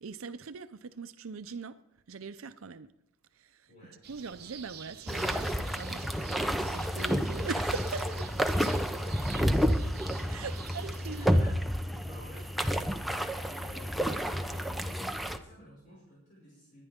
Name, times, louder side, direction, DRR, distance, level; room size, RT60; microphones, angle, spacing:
voice 1, 0.0-1.8 2.1-2.9 3.4-3.7 4.1-8.1 10.3-11.5, right 5 dB, 70° right, 0.6 m, -41 dB
voice 2, 3.7-4.0 8.1-8.3 8.9-9.9 10.2-10.4 10.9-16.8, equal, 40° left, 5.7 m, -53 dB
sound 1, 4.0-11.3, right 7 dB, 50° right, 1.2 m, -48 dB
sound 2, 5.1-15.4, equal, ahead, 0.6 m, -30 dB
22.0 x 9.9 x 3.7 m
head